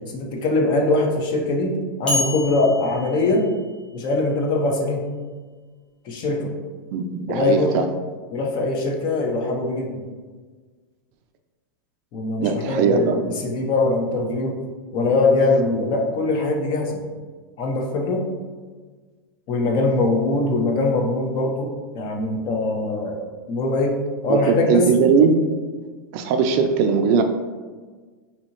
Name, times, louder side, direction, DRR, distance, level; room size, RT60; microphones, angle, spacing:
voice 1, 0.1-1.7 2.0-3.4 3.9-5.0 6.0-6.5 7.3-7.8 8.3-10.0 12.1-14.6 14.9-17.0 17.6-18.2 19.5-21.7 21.9-23.9 24.2-24.8, left 2 dB, 40° left, 1 dB, 0.7 m, -22 dB
sound 1, 2.1-4.1, left 2 dB, 10° left, 1.1 m, -29 dB
voice 2, 6.9-7.9 12.4-13.3 24.3-25.4 26.1-27.2, right 5 dB, 50° right, 6 dB, 0.4 m, -19 dB
4.1 x 2.8 x 3.0 m, 1.4 s
hypercardioid pair, 125°, 11 cm